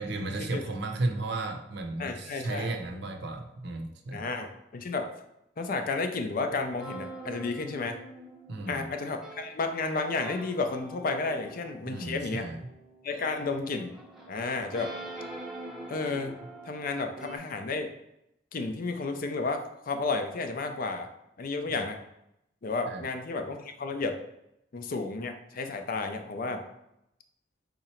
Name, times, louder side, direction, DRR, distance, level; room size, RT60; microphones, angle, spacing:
voice 1, 0.0-4.2 8.5-8.8 11.9-12.6 21.7-21.8 22.9-23.0, right 2 dB, 65° right, 4 dB, 0.6 m, -34 dB
voice 2, 2.0-2.7 4.1-5.1 5.6-8.0 8.7-12.5 13.0-13.9 14.3-14.9 15.9-16.3 16.6-17.9 18.5-21.1 21.4-22.0 22.6-24.2 24.7-26.6, left 3 dB, 50° left, 6 dB, 0.5 m, -32 dB
sound 1, 6.8-17.4, right 2 dB, ahead, 0.7 m, -45 dB
3.7 x 2.9 x 4.3 m, 0.82 s
head